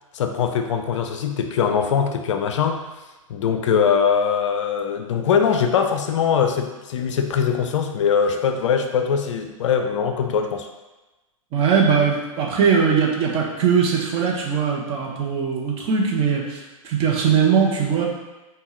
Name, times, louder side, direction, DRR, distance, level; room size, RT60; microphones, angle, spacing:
voice 1, 0.1-2.9 3.3-10.7, left 7 dB, 60° left, 6 dB, 0.4 m, -22 dB
voice 2, 11.5-18.0, right 6 dB, 30° right, -1 dB, 0.7 m, -20 dB
5.3 x 2.2 x 3.0 m, 1.1 s
figure-of-eight pair, 105°, 18 cm